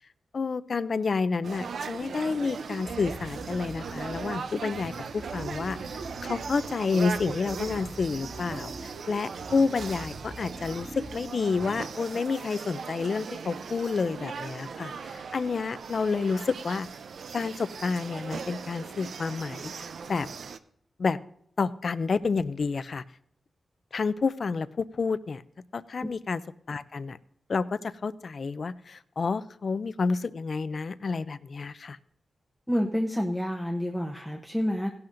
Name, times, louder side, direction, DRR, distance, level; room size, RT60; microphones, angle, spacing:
voice 1, 0.3-16.9 17.3-19.7 20.1-20.3 21.0-21.2 21.6-23.0 23.9-25.4 25.7-26.4 26.7-27.2 27.5-32.0, left 4 dB, 50° left, 16 dB, 0.4 m, -29 dB
sound 1, 1.4-20.6, right 5 dB, 75° right, 0.5 m, -39 dB
sound 2, 2.9-12.1, right 2 dB, 45° right, 2.4 m, -44 dB
voice 2, 32.7-34.9, equal, ahead, 0 dB, 0.8 m, -28 dB
17.0 x 11.5 x 2.6 m, 0.69 s
wide cardioid pair, 105°, 0 cm